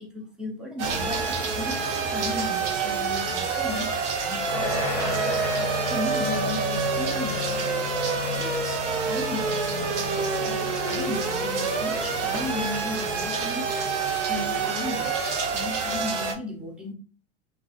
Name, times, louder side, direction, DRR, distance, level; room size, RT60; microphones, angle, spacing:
voice 1, 0.0-5.3 5.9-7.9 8.2-13.7 14.3-15.2 15.5-16.9, left 2 dB, 5° right, 0 dB, 0.3 m, -36 dB
sound 1, 0.8-16.3, right 5 dB, 90° right, 0.8 m, -27 dB
sound 2, 4.5-15.4, left 3 dB, 15° left, 0.9 m, -35 dB
3.6 x 2.4 x 2.5 m, 0.39 s
supercardioid pair, 140°, 35 cm